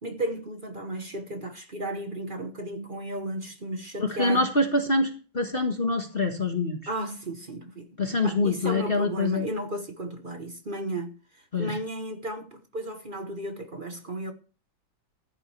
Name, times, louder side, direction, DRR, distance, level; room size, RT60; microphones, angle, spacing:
voice 1, 0.0-4.4 6.9-7.9 8.2-14.3, right 1 dB, 35° right, 1.0 m, -34 dB
voice 2, 4.0-6.8 8.0-9.5 11.5-11.8, left 2 dB, 30° left, 1.5 m, -25 dB
14.5 x 11.0 x 3.3 m
omnidirectional pair, 2.2 m